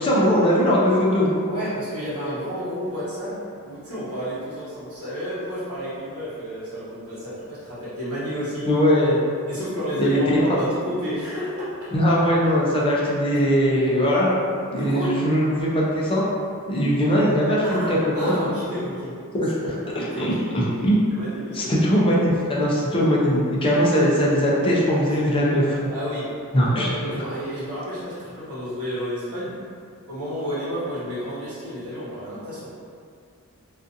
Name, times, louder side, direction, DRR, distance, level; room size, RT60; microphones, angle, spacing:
voice 1, 0.0-1.3 8.7-9.2 10.0-10.2 10.5-10.6 11.9-14.3 14.7-16.2 16.7-18.3 19.3-21.0 21.5-25.9 26.5-26.9 27.2-27.3, equal, 25° left, -5 dB, 0.4 m, -20 dB
voice 2, 1.5-3.3 3.6-8.7 9.5-11.9 13.3-13.4 14.7-15.1 17.6-19.1 20.0-20.5 21.1-21.8 25.9-26.3 26.7-29.5 30.1-32.7, equal, 75° right, -11 dB, 1.1 m, -31 dB
2.4 x 2.4 x 2.6 m, 2.2 s
head